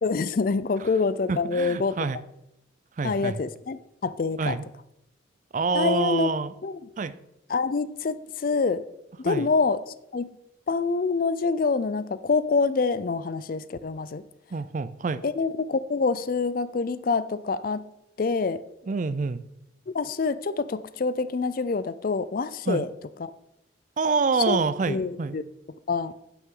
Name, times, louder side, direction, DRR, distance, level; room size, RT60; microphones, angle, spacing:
voice 1, 0.0-2.0 3.0-4.6 5.7-6.3 6.6-6.8 7.5-8.8 9.2-9.8 10.1-10.3 10.7-14.2 15.2-17.8 18.2-18.6 19.9-22.9 23.2-23.3 24.5-24.6 24.9-25.4 25.9-26.1, left 4 dB, 45° left, 15 dB, 0.4 m, -26 dB
voice 2, 1.3-2.2 3.0-3.4 4.4-4.6 5.5-6.5 7.0-7.2 9.2-9.5 14.5-15.2 18.8-19.4 22.7-22.9 24.0-25.4, right 4 dB, 40° right, 15 dB, 0.4 m, -27 dB
9.2 x 8.3 x 3.8 m, 0.84 s
head